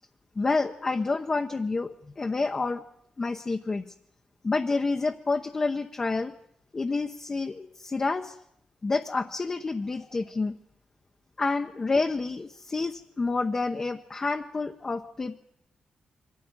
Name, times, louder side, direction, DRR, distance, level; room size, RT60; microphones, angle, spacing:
voice 1, 0.4-2.8 3.2-3.8 4.4-6.3 6.7-8.4 8.8-10.5 11.4-15.3, left 3 dB, 25° left, 4 dB, 0.9 m, -28 dB
23.5 x 15.0 x 9.7 m, 0.73 s
wide cardioid pair, 160°, 2 cm